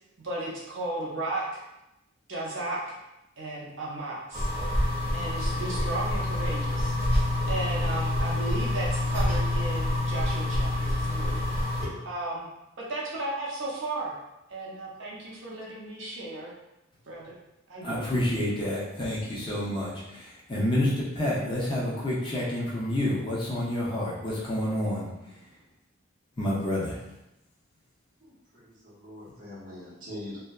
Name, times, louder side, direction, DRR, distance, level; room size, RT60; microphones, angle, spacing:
voice 1, 0.2-1.6 2.3-3.0 3.4-4.5 5.1-6.9 7.5-11.4 12.0-12.5 12.8-14.1 14.5-16.5 17.1-17.4 17.7-18.2, right 2 dB, 60° right, -5 dB, 0.5 m, -34 dB
sound 1, 4.3-11.9, left 1 dB, 15° right, 1.0 m, -27 dB
voice 2, 17.8-25.4 26.4-27.1, left 1 dB, 25° left, -6 dB, 0.4 m, -29 dB
voice 3, 28.2-30.4, left 1 dB, 40° right, -8 dB, 0.9 m, -43 dB
2.6 x 2.1 x 2.2 m, 0.91 s
head